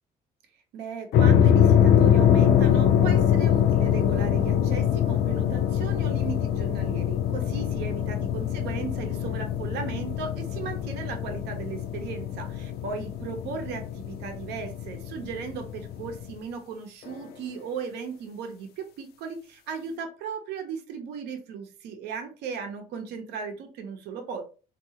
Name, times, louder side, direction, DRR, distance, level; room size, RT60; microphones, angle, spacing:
voice 1, 0.7-24.4, right 5 dB, 85° right, 4 dB, 0.7 m, -36 dB
sound 1, 1.1-16.3, left 9 dB, 65° left, 0.4 m, -23 dB
3.6 x 2.4 x 2.8 m, 0.34 s
cardioid pair, 110°, 17 cm